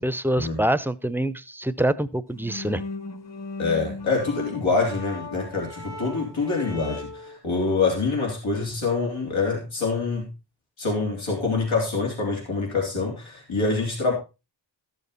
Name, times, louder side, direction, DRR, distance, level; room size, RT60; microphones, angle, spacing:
voice 1, 0.0-2.8, right 1 dB, 5° right, 14 dB, 0.6 m, -25 dB
sound 1, 2.3-7.4, left 3 dB, 35° left, 1.2 m, -37 dB
voice 2, 3.6-10.3 10.8-14.1, left 4 dB, 85° left, -1 dB, 3.4 m, -25 dB
13.0 x 7.0 x 4.0 m, 0.28 s
wide cardioid pair, 55°, 46 cm